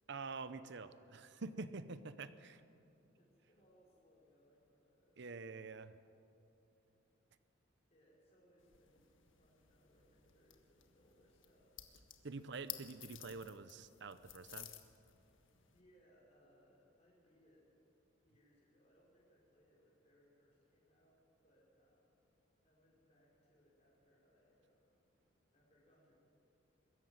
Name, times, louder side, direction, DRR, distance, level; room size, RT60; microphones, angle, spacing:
voice 1, 0.1-2.6 5.2-6.0 12.2-14.8, right 4 dB, 60° right, 13 dB, 0.8 m, -47 dB
voice 2, 3.1-5.4 7.9-9.1 9.4-11.8 12.4-12.6 15.7-17.7 18.2-22.3 22.6-25.1 25.5-26.1, equal, 30° left, -5 dB, 5.0 m, -71 dB
sound 1, 8.6-15.8, left 12 dB, 70° left, 1.6 m, -55 dB
22.0 x 14.0 x 9.5 m, 2.7 s
head